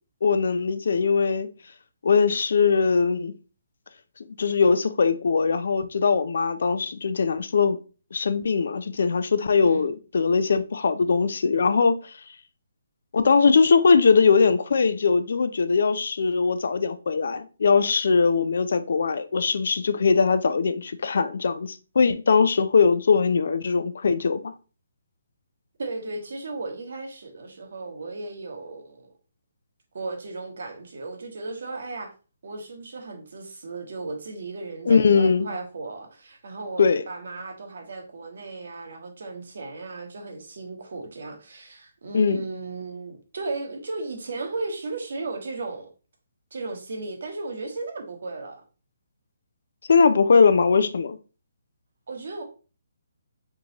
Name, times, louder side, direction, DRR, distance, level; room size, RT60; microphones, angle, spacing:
voice 1, 0.2-1.5 2.0-3.3 4.4-7.8 8.1-12.1 13.1-24.5 34.9-35.5 36.8-37.0 42.1-42.4 49.9-51.2, left 5 dB, 65° left, 0.4 m, -21 dB
voice 2, 9.6-9.9 25.8-29.1 29.9-32.1 32.4-45.9 46.5-48.6 52.1-52.4, right 3 dB, 65° right, 1.2 m, -35 dB
3.8 x 3.7 x 2.9 m
hypercardioid pair, 145°, 0 cm